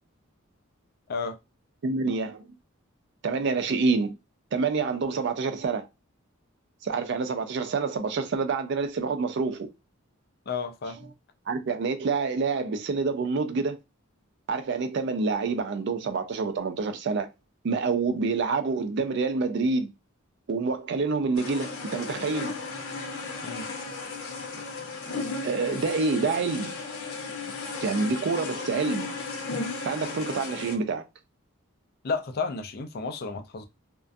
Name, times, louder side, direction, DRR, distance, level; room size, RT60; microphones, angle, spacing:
voice 1, 1.8-2.4 3.2-4.2 4.5-5.9 6.8-9.7 11.5-13.8 14.5-17.3 17.6-19.9 20.5-22.6 25.4-26.8 27.8-29.2 29.8-31.0, right 4 dB, 55° right, 0.4 m, -27 dB
voice 2, 10.5-11.1 23.4-23.7 32.0-33.6, left 4 dB, 50° left, 0.4 m, -32 dB
sound 1, 21.4-30.8, left 3 dB, 90° left, 0.7 m, -35 dB
2.4 x 2.2 x 2.5 m
head